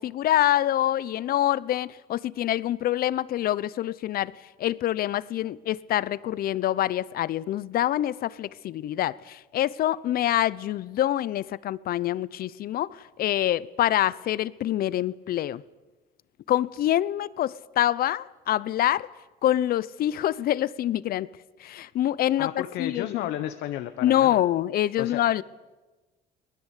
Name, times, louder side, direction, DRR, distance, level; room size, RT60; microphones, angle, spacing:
voice 1, 0.0-4.3 4.6-15.6 16.5-19.1 19.4-21.3 21.6-23.1 24.0-25.4, left 12 dB, 60° left, 0.8 m, -26 dB
voice 2, 22.4-24.4 25.0-25.2, left 12 dB, 85° left, 1.3 m, -32 dB
24.0 x 19.5 x 8.3 m
cardioid pair, 110°, 17 cm